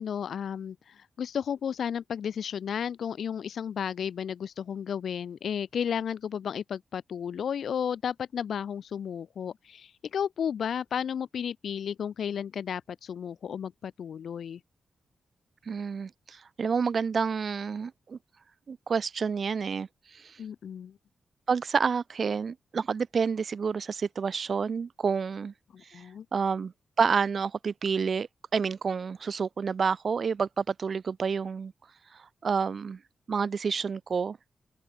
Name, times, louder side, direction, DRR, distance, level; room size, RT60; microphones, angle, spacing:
voice 1, 0.0-14.6 20.4-21.0 25.7-26.2, left 8 dB, 75° left, 1.6 m, -33 dB
voice 2, 15.7-18.2 18.7-20.4 21.5-25.5 25.9-26.0 26.3-26.7 27.0-31.7 32.1-33.0 33.3-34.4, right 5 dB, 50° right, 2.9 m, -29 dB
open air
wide cardioid pair, 140°, 0 cm